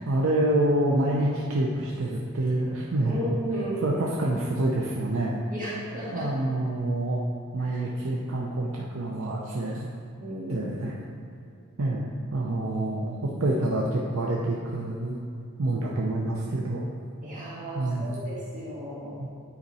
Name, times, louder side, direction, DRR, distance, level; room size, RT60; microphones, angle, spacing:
voice 1, 0.0-3.2 3.8-5.4 6.1-7.2 7.5-9.9 10.5-10.9 11.8-15.2 15.6-16.9 17.8-18.2 19.2-19.3, right 1 dB, 65° right, -3 dB, 0.7 m, -27 dB
voice 2, 3.1-4.0 5.5-6.3 7.6-7.8 10.2-10.7 17.2-19.2, right 1 dB, 40° right, -8 dB, 1.7 m, -34 dB
9.6 x 4.3 x 4.2 m, 2.5 s
head